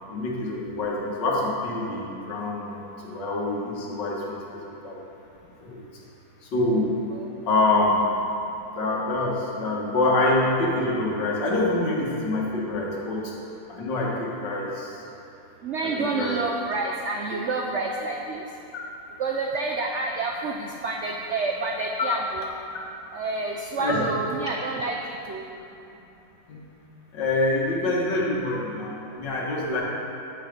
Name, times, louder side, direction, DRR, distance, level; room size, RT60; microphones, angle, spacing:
voice 1, 0.1-5.0 5.6-5.8 6.4-7.0 7.4-8.1 8.8-13.3 13.7-15.0 16.1-16.3 23.8-24.1 26.5-26.7 27.1-29.8, left 2 dB, 70° left, -3 dB, 2.1 m, -26 dB
voice 2, 15.6-18.4 19.2-22.5 23.1-25.5 29.4-29.8, right 3 dB, 80° right, 1 dB, 0.6 m, -29 dB
9.5 x 7.4 x 5.2 m, 2.8 s
omnidirectional pair, 2.0 m